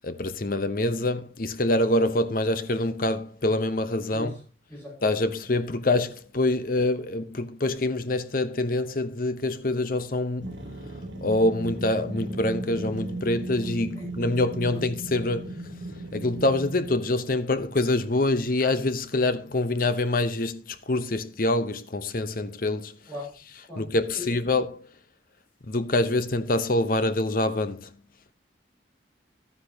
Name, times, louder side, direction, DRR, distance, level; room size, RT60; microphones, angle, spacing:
voice 1, 0.0-4.3 5.0-10.5 11.2-15.6 16.1-23.0 23.8-24.8 25.7-27.9, left 2 dB, 50° left, 0.9 m, -25 dB
voice 2, 4.7-5.0 13.9-14.1 14.7-14.8 23.1-23.3 23.7-23.8 24.1-24.4, left 2 dB, 15° left, 5.6 m, -38 dB
sound 1, 10.4-17.2, right 2 dB, 80° right, 2.7 m, -36 dB
12.5 x 9.7 x 2.9 m
head